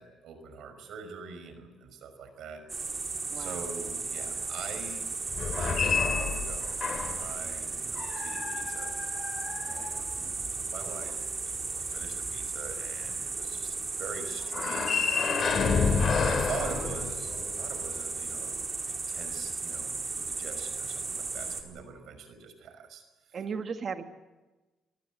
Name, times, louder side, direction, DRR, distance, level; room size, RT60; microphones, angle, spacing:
voice 1, 0.0-2.6 3.4-5.1 5.4-6.8 7.2-8.9 9.6-18.5 18.8-23.4, right 5 dB, 75° right, 9 dB, 5.4 m, -44 dB
sound 1, 2.7-21.6, right 4 dB, 35° right, 4.3 m, -35 dB
voice 2, 3.3-3.7 16.2-16.9 23.3-24.0, right 5 dB, 50° right, 7 dB, 1.8 m, -37 dB
sound 2, 5.3-7.3 8.0-10.4 14.5-17.6, left 5 dB, 50° left, 3.1 m, -29 dB
28.5 x 19.5 x 7.7 m, 1.1 s
cardioid pair, 90°, 0 cm